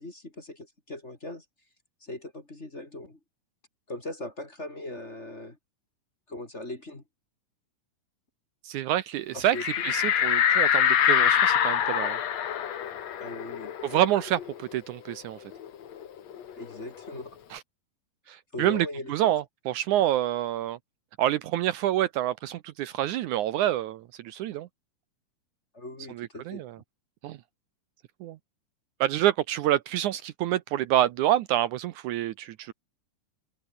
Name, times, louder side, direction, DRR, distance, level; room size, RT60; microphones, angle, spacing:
voice 1, 0.0-1.4 2.0-3.2 3.9-5.6 6.3-7.0 9.3-9.6 13.2-13.7 16.5-17.3 18.5-19.3 25.7-26.6, left 1 dB, 20° left, 2.9 m, -39 dB
voice 2, 8.6-12.2 13.8-15.4 17.5-17.6 18.3-20.8 21.2-24.7 26.1-26.8 27.2-27.4 28.2-28.4 29.0-32.7, right 13 dB, 75° right, 2.1 m, -27 dB
sound 1, 9.5-14.7 15.1-15.2 15.5-17.2, left 9 dB, 55° left, 2.8 m, -25 dB
omnidirectional pair, 3.8 m